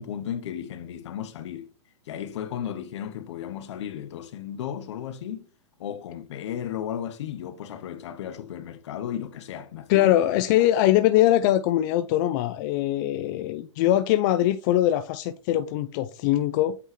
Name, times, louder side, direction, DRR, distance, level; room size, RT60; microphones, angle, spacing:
voice 1, 0.0-1.7 2.1-5.5 5.8-10.1, left 9 dB, 65° left, 0.9 m, -34 dB
voice 2, 9.9-16.8, left 13 dB, 40° left, 0.4 m, -22 dB
8.4 x 3.6 x 3.1 m
hypercardioid pair, 130°, 16 cm